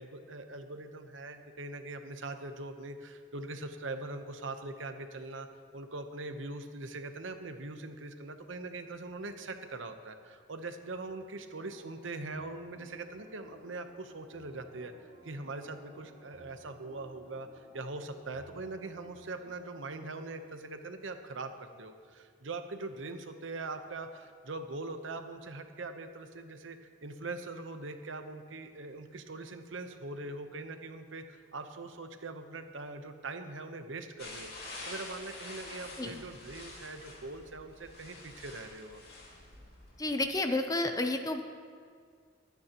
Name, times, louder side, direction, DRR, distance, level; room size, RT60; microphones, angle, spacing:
voice 1, 0.0-5.5 5.7-14.9 15.2-39.0, right 2 dB, 85° right, 7 dB, 0.9 m, -42 dB
sound 1, 11.6-21.0 21.3-21.4, equal, 55° right, 3.1 m, -58 dB
sound 2, 34.2-40.2, left 2 dB, 55° left, 2.8 m, -47 dB
voice 2, 40.0-41.4, left 2 dB, 20° left, 6 dB, 0.6 m, -30 dB
23.5 x 9.5 x 3.0 m, 2.1 s
head